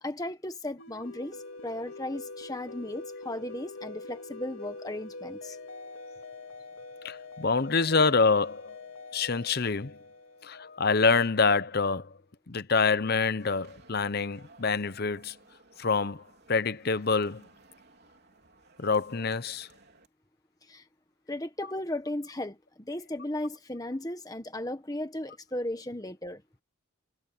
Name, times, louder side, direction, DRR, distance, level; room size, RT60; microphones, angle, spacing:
voice 1, 0.0-5.6 20.7-20.8 21.3-26.4, left 1 dB, 15° left, 1.4 m, -36 dB
sound 1, 0.8-11.1, left 3 dB, 80° left, 2.4 m, -44 dB
voice 2, 7.0-8.7 9.1-9.9 10.4-12.1 12.5-15.3 15.8-16.2 16.5-17.4 18.8-19.7, left 4 dB, 45° left, 0.8 m, -26 dB
sound 2, 13.4-20.1, right 3 dB, 50° right, 3.8 m, -58 dB
head